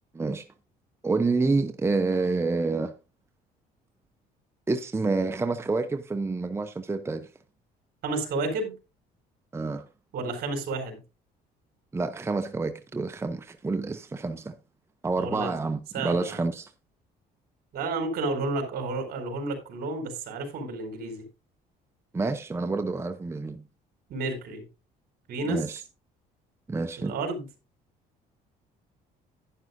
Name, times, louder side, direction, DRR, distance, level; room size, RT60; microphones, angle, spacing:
voice 1, 1.0-2.9 4.7-7.3 9.5-9.9 11.9-14.5 15.0-16.7 22.1-23.6 25.5-25.8 26.7-27.1, right 3 dB, 15° right, 0.7 m, -28 dB
voice 2, 8.0-8.8 10.1-11.0 15.2-15.5 15.9-16.4 17.7-21.2 24.1-24.7 25.3-25.6 27.0-27.5, right 2 dB, 65° right, 4.1 m, -31 dB
11.0 x 10.5 x 2.6 m
cardioid pair, 110°, 17 cm